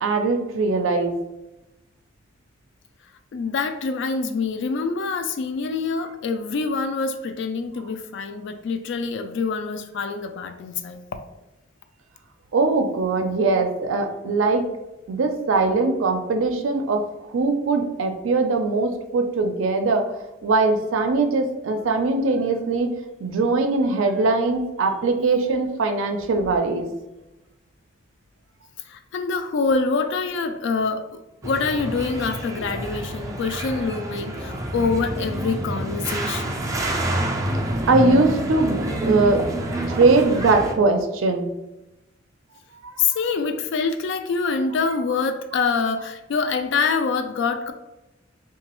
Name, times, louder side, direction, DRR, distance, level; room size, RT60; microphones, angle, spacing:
voice 1, 0.0-1.2 12.5-14.7 15.1-20.1 20.4-22.9 23.2-26.9 37.9-41.5 42.7-42.9, right 3 dB, 90° right, 5 dB, 0.4 m, -21 dB
voice 2, 3.3-11.0 28.9-36.6 43.0-47.7, left 4 dB, 65° left, 8 dB, 0.3 m, -25 dB
sound 1, 31.4-40.7, right 1 dB, 15° right, 0.3 m, -28 dB
3.0 x 2.2 x 2.9 m, 0.98 s
head